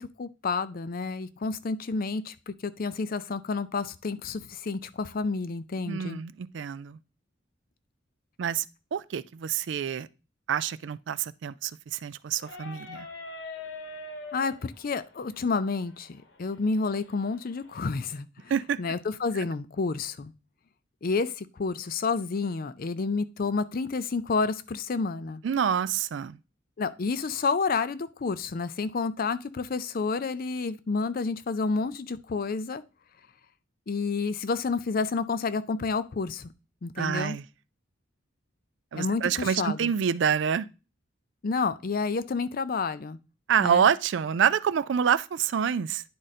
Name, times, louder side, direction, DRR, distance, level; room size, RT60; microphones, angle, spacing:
voice 1, 0.0-6.2 14.3-18.5 18.8-20.3 21.0-25.4 26.8-32.8 33.9-36.5 36.8-37.4 38.9-39.9 41.4-43.2 43.6-43.8, left 4 dB, 45° left, 0.4 m, -30 dB
voice 2, 5.9-7.0 8.4-8.7 8.9-10.1 10.5-13.1 18.5-18.8 25.4-26.4 37.0-37.4 38.9-40.7 43.5-46.0, right 7 dB, 65° right, 0.3 m, -27 dB
sound 1, 12.4-18.0, left 3 dB, 65° left, 1.2 m, -44 dB
10.0 x 3.8 x 4.1 m
head